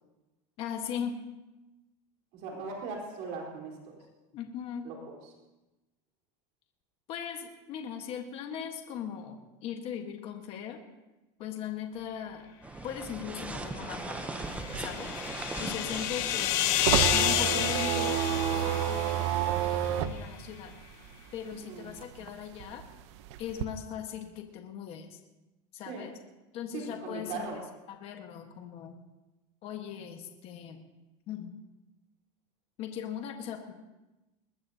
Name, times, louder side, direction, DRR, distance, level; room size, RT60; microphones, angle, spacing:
voice 1, 0.6-1.2 4.3-4.9 7.1-10.8 11.4-12.5 12.8-14.4 14.8-15.2 15.6-16.7 17.1-20.7 21.3-22.8 23.4-25.2 25.7-26.2 26.5-27.5 27.9-28.9 29.6-30.9 31.3-31.5 32.8-33.7, left 8 dB, 40° left, 4 dB, 1.4 m, -39 dB
voice 2, 2.3-4.0 4.8-5.2 15.9-16.2 21.6-21.9 25.9-26.1 26.7-27.6, right 4 dB, 50° right, -1 dB, 4.0 m, -39 dB
sound 1, 12.6-17.7, right 2 dB, 10° right, 0.8 m, -39 dB
sound 2, 14.1-19.7, left 12 dB, 55° left, 1.0 m, -30 dB
Car window down, 14.5-21.6 21.9-23.6, right 11 dB, 70° right, 0.9 m, -30 dB
21.0 x 20.5 x 2.8 m, 1.0 s
cardioid pair, 170°, 15 cm